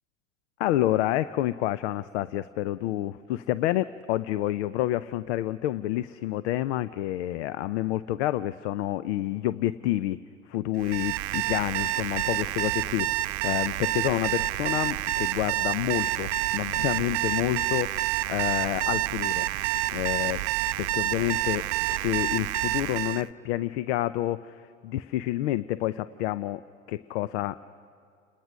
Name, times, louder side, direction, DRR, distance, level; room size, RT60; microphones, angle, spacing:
voice 1, 0.6-10.2 10.5-19.5 19.9-20.4 20.8-26.6 26.9-27.7, left 14 dB, 60° left, 17 dB, 0.6 m, -29 dB
Alarm, 10.8-23.3, right 17 dB, 60° right, 0.5 m, -28 dB
29.5 x 19.5 x 6.3 m, 2.3 s
hypercardioid pair, 85°, 39 cm